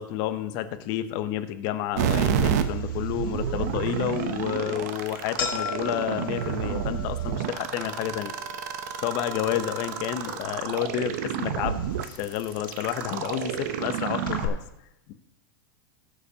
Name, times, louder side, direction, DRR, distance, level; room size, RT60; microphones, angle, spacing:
voice 1, 0.0-8.3 9.0-14.6 15.1-15.2, left 11 dB, 35° left, 10 dB, 0.7 m, -30 dB
sound 1, 2.0-14.5, right 9 dB, 50° right, 0.7 m, -30 dB
sound 2, 2.4-14.5, left 5 dB, 85° left, 2.0 m, -40 dB
19.5 x 6.7 x 2.8 m, 0.89 s
supercardioid pair, 165°, 11 cm